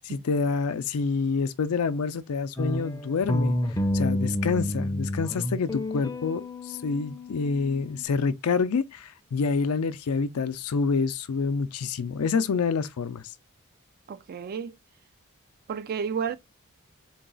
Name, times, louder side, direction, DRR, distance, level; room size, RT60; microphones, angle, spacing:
voice 1, 0.0-3.6 3.9-13.2, left 5 dB, 85° left, 0.4 m, -27 dB
sound 1, 2.6-8.0, left 1 dB, 15° left, 0.5 m, -29 dB
voice 2, 14.1-14.8 15.7-16.4, right 7 dB, 45° right, 0.3 m, -31 dB
3.9 x 2.3 x 3.7 m
head